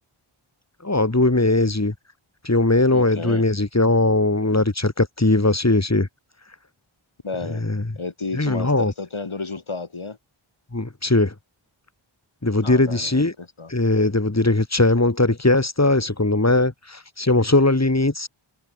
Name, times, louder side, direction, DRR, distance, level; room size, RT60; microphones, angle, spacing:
voice 1, 0.8-1.9 2.4-6.1 7.5-7.8 8.3-8.9 10.7-11.3 12.4-13.3 13.7-18.3, left 2 dB, 30° left, 4.3 m, -19 dB
voice 2, 2.9-3.4 7.2-7.6 8.0-10.2 12.6-13.7, left 4 dB, 70° left, 4.8 m, -32 dB
wide cardioid pair, 50°, 50 cm